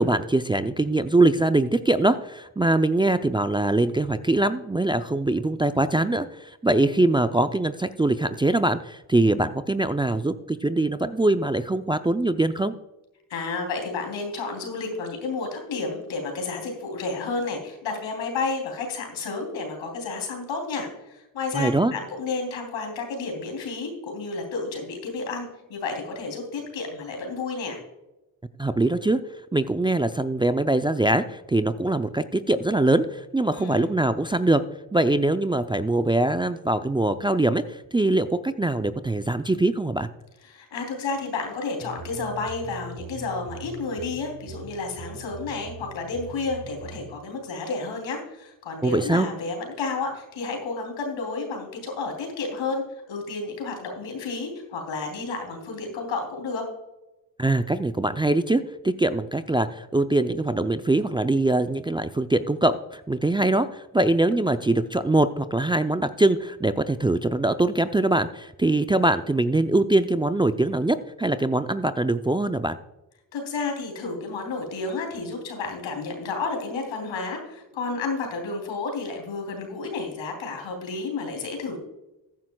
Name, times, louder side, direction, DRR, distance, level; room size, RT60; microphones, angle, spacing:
voice 1, 0.0-12.7 21.5-21.9 28.6-29.2 29.5-34.6 34.9-40.1 48.8-49.3 57.4-72.8, right 2 dB, 10° right, 10 dB, 0.5 m, -23 dB
voice 2, 13.3-27.8 33.5-33.9 40.4-56.7 73.3-81.8, left 3 dB, 75° left, 3 dB, 3.4 m, -31 dB
sound 1, 41.8-47.1, right 3 dB, 35° right, 2.4 m, -41 dB
15.0 x 9.4 x 2.3 m, 0.97 s
supercardioid pair, 55°, 46 cm